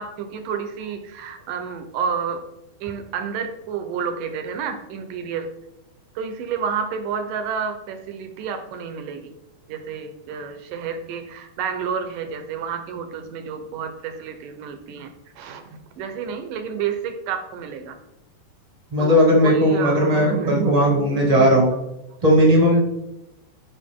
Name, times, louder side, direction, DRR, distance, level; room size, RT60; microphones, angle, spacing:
voice 1, 0.0-2.4 2.8-5.5 6.2-9.3 9.7-15.6 16.0-18.0 19.0-21.8 22.7-22.8, right 6 dB, 75° right, 7 dB, 2.0 m, -30 dB
voice 2, 18.9-21.7 22.2-22.8, equal, 30° right, -2 dB, 0.7 m, -17 dB
13.0 x 5.3 x 3.6 m, 0.89 s
omnidirectional pair, 4.6 m